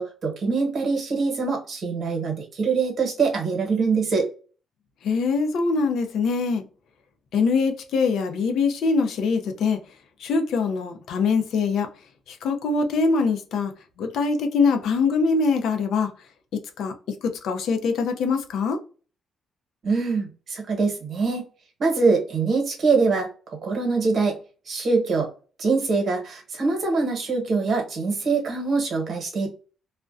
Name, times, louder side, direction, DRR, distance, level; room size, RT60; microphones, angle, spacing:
voice 1, 0.0-4.3 19.8-21.4 21.8-23.3 23.6-24.4 24.7-25.3 25.6-29.5, right 4 dB, 55° right, 1.0 m, -23 dB
voice 2, 5.0-6.6 7.3-9.8 10.2-11.9 12.3-13.7 14.0-16.1 16.8-16.9 17.2-18.8, left 4 dB, 75° left, 0.5 m, -23 dB
2.3 x 2.1 x 2.4 m
cardioid pair, 90°, 0 cm